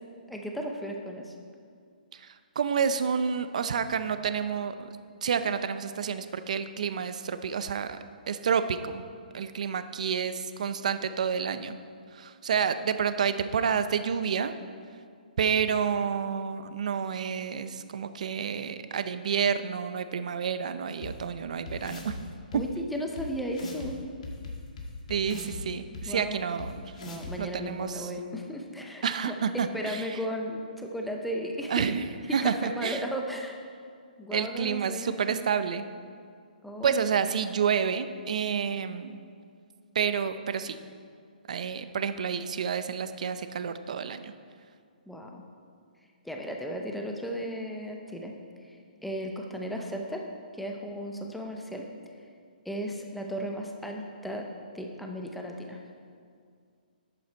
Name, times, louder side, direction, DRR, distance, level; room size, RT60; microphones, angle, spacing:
voice 1, 0.3-1.4 22.5-24.0 26.1-26.4 27.0-31.8 32.4-33.5 34.2-35.4 36.6-37.0 45.1-45.4 46.2-48.3 48.6-50.3 50.5-51.9 52.7-54.5 54.7-55.8, equal, ahead, 1 dB, 0.5 m, -35 dB
voice 2, 2.1-4.9 5.2-8.0 8.3-9.0 9.3-11.8 12.1-14.5 15.4-22.2 22.5-22.6 25.1-26.8 27.4-28.1 29.0-30.1 31.7-32.0 32.3-33.0 34.3-35.8 36.8-39.2 39.9-40.8 41.5-44.3, right 7 dB, 50° right, 11 dB, 0.5 m, -29 dB
sound 1, 21.0-21.1 21.7-22.2 22.5-22.6 23.2-23.3 23.5-23.9 24.2-25.6 25.9-26.0 26.6-26.7 27.0-27.3, left 3 dB, 45° left, 1.9 m, -39 dB
11.5 x 8.5 x 4.4 m, 2.2 s
hypercardioid pair, 170°, 5 cm